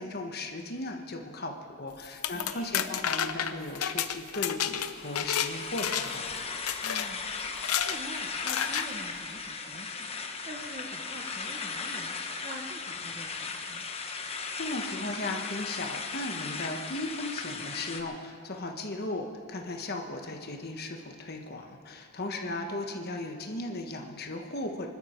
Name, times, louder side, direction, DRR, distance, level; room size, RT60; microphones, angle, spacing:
voice 1, 0.0-6.2 14.6-24.9, left 2 dB, 45° left, 3 dB, 1.4 m, -36 dB
sound 1, 2.0-5.5 5.8-6.3 6.7-7.1 7.6-8.0 8.5-8.9, left 9 dB, 85° left, 0.7 m, -30 dB
voice 2, 2.3-2.9 6.8-13.9 22.3-22.8, right 1 dB, 30° right, -1 dB, 1.1 m, -46 dB
sound 2, 4.9-18.0, left 4 dB, 25° left, 1.0 m, -37 dB
25.0 x 12.5 x 4.6 m, 2.3 s
head